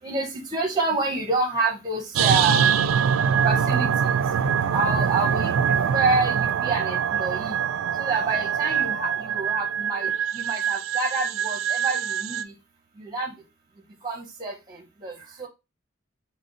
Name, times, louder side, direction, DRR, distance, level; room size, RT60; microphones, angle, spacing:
voice 1, 0.0-2.7 3.4-7.6 7.9-12.6 13.0-13.3 14.0-15.5, right 3 dB, 20° right, 0.6 m, -28 dB
sound 1, 2.2-12.4, right 7 dB, 85° right, 0.3 m, -24 dB
5.0 x 2.1 x 3.8 m
head